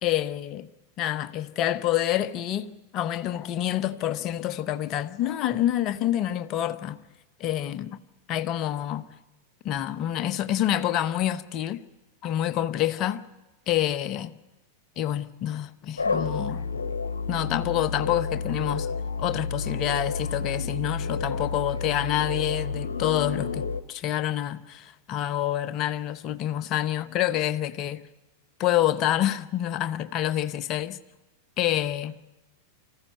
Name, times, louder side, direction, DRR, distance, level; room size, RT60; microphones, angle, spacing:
voice 1, 0.0-0.7 1.0-7.0 7.4-8.0 8.3-9.1 9.6-11.8 12.2-13.3 13.7-14.3 15.0-16.6 17.3-18.9 19.2-28.0 28.6-31.0 31.6-32.3, left 12 dB, 35° left, 0.9 m, -27 dB
sound 1, 16.0-23.8, left 4 dB, 70° left, 1.0 m, -30 dB
25.0 x 15.5 x 9.3 m
figure-of-eight pair, 90°, 0 cm